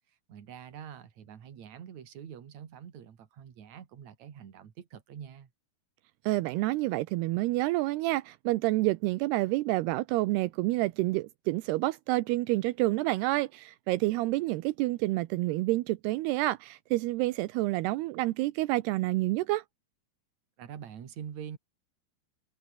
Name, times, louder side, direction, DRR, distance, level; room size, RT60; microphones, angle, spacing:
voice 1, 0.3-5.5 20.6-21.6, right 8 dB, 50° right, 3.3 m, -45 dB
voice 2, 6.2-19.6, right 19 dB, 80° right, 2.7 m, -28 dB
omnidirectional pair, 4.8 m